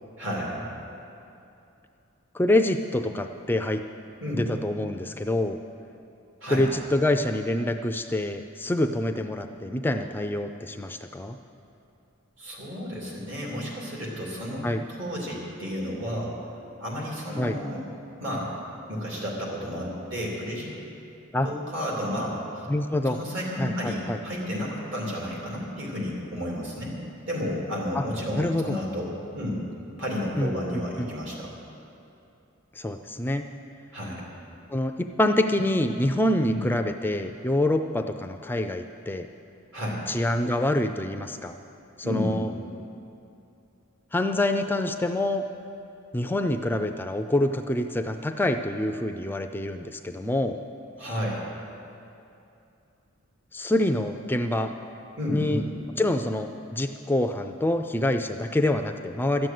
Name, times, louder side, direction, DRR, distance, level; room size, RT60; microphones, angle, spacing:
voice 1, 0.2-0.7 4.2-4.4 6.4-6.6 12.4-16.4 16.8-17.8 18.2-18.5 18.9-20.7 21.4-22.7 23.1-27.0 27.3-29.6 30.0-31.5 33.9-34.3 36.5-36.6 39.7-40.0 42.0-42.3 51.0-51.4 55.2-55.6, equal, 65° right, -4 dB, 3.2 m, -32 dB
voice 2, 2.3-3.8 4.4-5.6 6.5-11.4 14.6-14.8 17.4-17.6 21.3-21.5 22.7-23.2 23.6-24.2 27.9-28.0 28.4-28.7 30.4-30.5 31.0-31.1 32.8-33.5 34.7-39.3 40.1-41.5 42.1-42.5 44.1-45.4 46.1-50.6 53.5-54.7 55.3-55.6 56.0-59.5, left 1 dB, 10° left, 7 dB, 0.3 m, -26 dB
13.0 x 7.7 x 9.3 m, 2.7 s
head